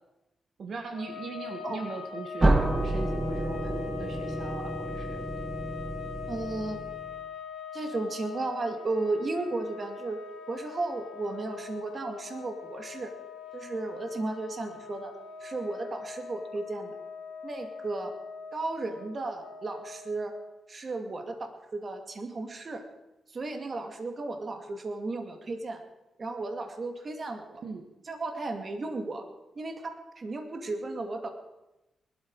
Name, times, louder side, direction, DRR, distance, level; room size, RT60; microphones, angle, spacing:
voice 1, 0.6-5.3 27.6-27.9, right 4 dB, 60° right, 4 dB, 1.8 m, -39 dB
sound 1, 0.9-20.6, left 7 dB, 80° left, 2.0 m, -42 dB
sound 2, 2.4-7.2, right 2 dB, 25° right, 1.2 m, -29 dB
voice 2, 6.3-6.8 7.7-10.2 10.5-13.1 13.5-15.2 15.4-17.0 17.4-18.1 18.5-20.3 20.7-22.8 23.3-25.8 26.2-27.6 28.0-29.2 29.6-31.3, right 2 dB, 40° right, 6 dB, 2.2 m, -34 dB
20.5 x 12.5 x 4.8 m, 0.98 s
cardioid pair, 85°, 0 cm